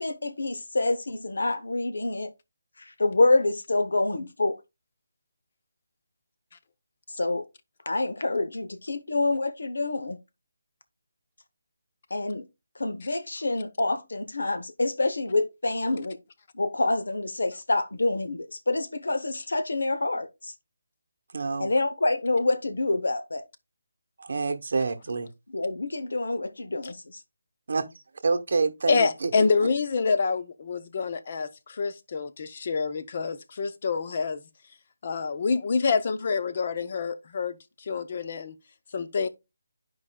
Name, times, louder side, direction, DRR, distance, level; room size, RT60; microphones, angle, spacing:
voice 1, 0.0-2.3 2.8-4.6 7.1-7.4 7.9-10.2 12.1-12.5 12.8-16.2 16.5-20.5 21.6-23.4 25.5-27.2, left 2 dB, 90° left, 0.8 m, -27 dB
voice 2, 21.3-21.7 24.2-25.3 27.7-27.8 28.2-29.3, right 4 dB, 45° right, 0.8 m, -27 dB
voice 3, 28.9-34.4 35.0-38.5 38.9-39.3, left 4 dB, 30° left, 0.5 m, -27 dB
12.0 x 4.8 x 2.2 m
hypercardioid pair, 175°, 0 cm